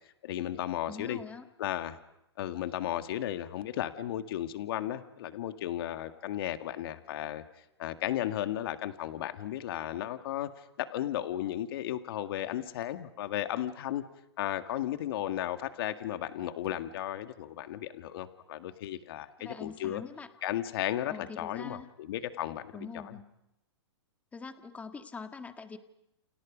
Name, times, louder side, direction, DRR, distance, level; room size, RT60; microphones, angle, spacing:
voice 1, 0.2-1.2 1.6-2.0 2.4-7.4 7.8-14.0 14.4-20.0 20.4-23.1, left 12 dB, 55° left, 8 dB, 2.0 m, -35 dB
voice 2, 0.9-1.5 19.4-20.3 21.1-21.9 22.7-23.3 24.3-25.8, left 5 dB, 10° left, 7 dB, 1.7 m, -43 dB
30.0 x 30.0 x 5.2 m, 0.87 s
hypercardioid pair, 140°, 15 cm